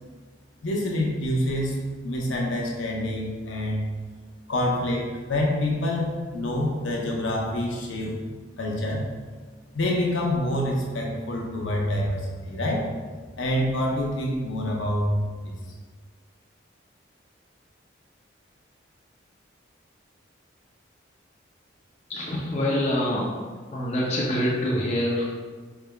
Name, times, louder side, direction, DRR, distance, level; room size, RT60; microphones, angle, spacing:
voice 1, 0.6-1.8 2.0-3.8 4.5-8.2 8.6-9.1 9.7-12.9 13.4-15.1 15.4-15.5, left 1 dB, 85° left, -1 dB, 0.8 m, -26 dB
voice 2, 22.1-23.4 23.7-25.2, left 1 dB, 35° left, -5 dB, 0.5 m, -25 dB
4.8 x 3.4 x 2.3 m, 1.4 s
head